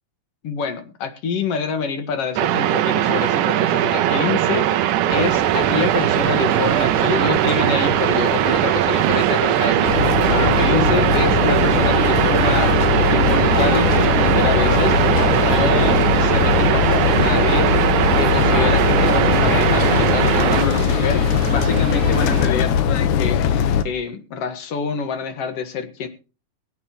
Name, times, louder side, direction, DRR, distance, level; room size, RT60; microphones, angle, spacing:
voice 1, 0.4-15.0 15.3-17.7 18.1-23.4 23.8-26.1, left 5 dB, 55° left, 9 dB, 2.5 m, -26 dB
sound 1, 2.4-20.6, right 12 dB, 80° right, 2.3 m, -19 dB
sound 2, 5.1-22.5, right 7 dB, 50° right, 1.9 m, -28 dB
sound 3, 9.9-23.8, left 8 dB, 75° left, 2.4 m, -20 dB
23.5 x 8.8 x 3.1 m, 0.34 s
omnidirectional pair, 3.6 m